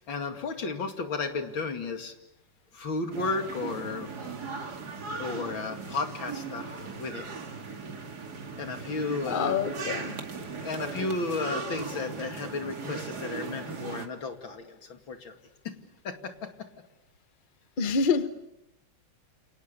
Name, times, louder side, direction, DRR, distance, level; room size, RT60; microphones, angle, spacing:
voice 1, 0.1-2.1 2.7-4.1 5.2-7.2 8.6-9.5 10.6-15.3 15.6-15.8 16.0-16.5, left 3 dB, 85° left, 3.2 m, -33 dB
sound 1, 3.1-14.1, right 4 dB, 55° right, 2.8 m, -38 dB
voice 2, 9.3-10.1 17.8-18.3, left 5 dB, 30° left, 1.1 m, -26 dB
30.0 x 29.0 x 6.9 m
omnidirectional pair, 2.1 m